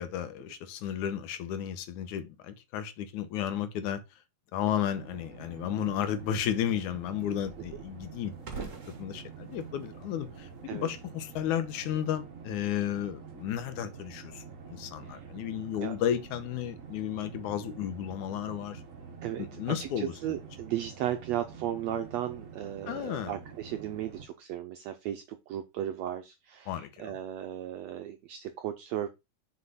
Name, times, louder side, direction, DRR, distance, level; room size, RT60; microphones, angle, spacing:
voice 1, 0.0-4.0 4.5-18.8 19.4-20.1 22.9-23.3 26.7-27.2, left 10 dB, 75° left, 2.2 m, -33 dB
sound 1, 4.9-24.3, right 5 dB, 60° right, 0.8 m, -47 dB
sound 2, 5.5-11.5, right 5 dB, 45° right, 1.0 m, -48 dB
voice 2, 19.2-29.1, right 11 dB, 80° right, 1.5 m, -35 dB
6.5 x 4.8 x 5.5 m
omnidirectional pair, 3.7 m